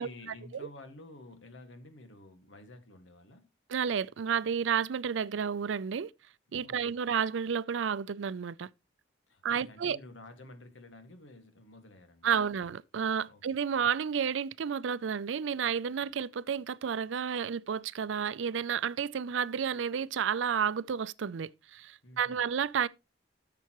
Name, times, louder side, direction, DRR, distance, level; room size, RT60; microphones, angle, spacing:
voice 1, 0.0-3.5 6.6-7.1 9.3-12.3 13.2-13.4 22.0-22.4, left 2 dB, 85° left, 1.9 m, -51 dB
voice 2, 3.7-6.1 6.5-8.7 9.4-10.0 12.2-22.9, right 7 dB, 80° right, 0.4 m, -31 dB
13.0 x 6.8 x 3.0 m
head